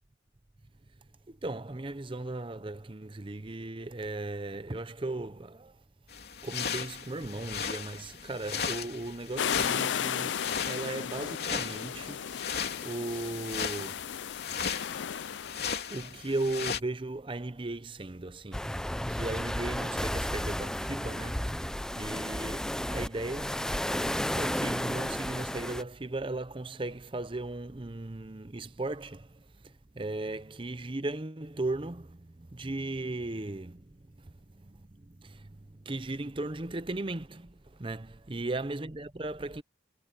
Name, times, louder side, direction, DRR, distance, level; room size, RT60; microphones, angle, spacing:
voice 1, 1.3-5.8 6.4-10.4 10.7-12.3 12.8-14.1 14.6-14.8 15.9-18.8 19.1-21.7 22.0-23.7 24.3-39.6, right 2 dB, 30° right, 0.7 m, -37 dB
sound 1, 6.1-16.8, left 6 dB, 60° left, 3.4 m, -37 dB
sound 2, 9.4-15.9, left 8 dB, 80° left, 0.5 m, -35 dB
sound 3, 18.5-25.8, left 1 dB, 5° left, 0.4 m, -33 dB
head